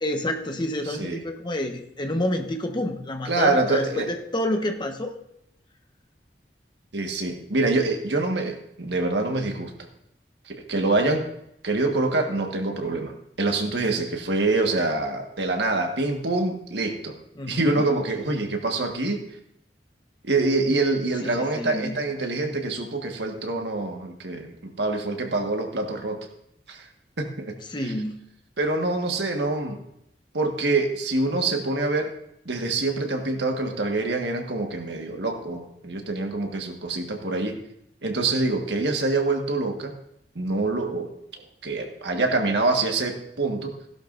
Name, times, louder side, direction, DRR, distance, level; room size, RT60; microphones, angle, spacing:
voice 1, 0.0-4.1 4.3-5.1 17.4-17.8 21.2-22.0 27.7-28.2, left 1 dB, 25° left, 4 dB, 1.1 m, -28 dB
voice 2, 0.8-1.2 3.2-4.1 6.9-9.9 10.5-11.3 11.6-17.1 17.5-19.2 20.2-26.2 26.7-26.9 27.2-27.6 28.6-29.8 30.3-32.1 32.4-37.6 38.0-39.9 40.3-41.1 41.6-43.7, right 2 dB, 80° right, 3 dB, 1.6 m, -25 dB
16.5 x 11.5 x 2.6 m, 0.78 s
head